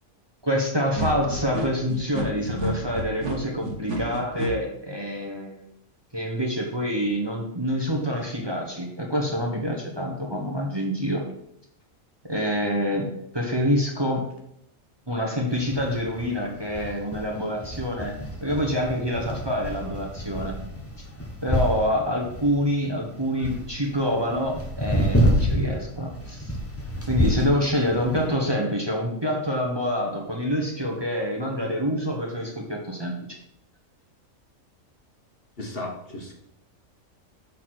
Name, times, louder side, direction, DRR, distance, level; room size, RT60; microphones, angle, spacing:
voice 1, 0.4-5.6 6.1-11.2 12.3-13.1 13.3-14.3 15.1-18.1 18.4-20.5 21.4-26.5 27.1-33.1, equal, 20° right, -1 dB, 1.3 m, -26 dB
sound 1, 0.9-4.5, right 1 dB, 65° right, 1.6 m, -30 dB
sound 2, 15.5-28.3, equal, 10° left, 1.0 m, -29 dB
voice 2, 35.6-36.3, left 2 dB, 50° left, 0 dB, 1.4 m, -35 dB
7.2 x 4.2 x 6.1 m, 0.75 s
omnidirectional pair, 1.4 m